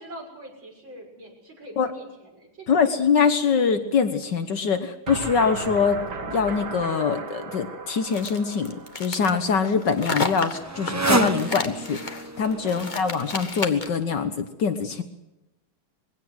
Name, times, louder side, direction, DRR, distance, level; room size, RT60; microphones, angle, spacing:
voice 1, 0.0-3.0 12.6-13.3, right 1 dB, 75° right, -1 dB, 7.5 m, -44 dB
voice 2, 2.7-6.0 6.3-15.0, left 6 dB, 65° left, 9 dB, 1.8 m, -24 dB
sound 1, 5.1-10.0, right 4 dB, 60° right, 2.3 m, -36 dB
sound 2, 8.1-14.0, left 3 dB, 25° left, 1.5 m, -32 dB
Motorcycle, 9.0-14.4, right 2 dB, 20° right, 0.4 m, -30 dB
22.0 x 17.0 x 8.0 m, 0.94 s
omnidirectional pair, 2.1 m